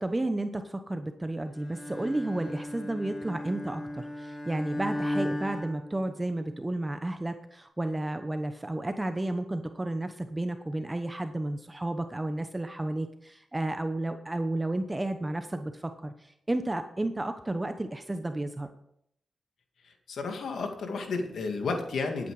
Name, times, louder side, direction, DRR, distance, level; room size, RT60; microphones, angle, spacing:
voice 1, 0.0-18.7, right 1 dB, 20° right, 8 dB, 0.9 m, -32 dB
Bowed string instrument, 1.6-6.6, left 1 dB, 45° left, 3.7 m, -36 dB
voice 2, 19.8-22.3, left 4 dB, 80° left, 4 dB, 2.0 m, -32 dB
12.0 x 8.8 x 4.8 m, 0.74 s
cardioid pair, 70°, 0 cm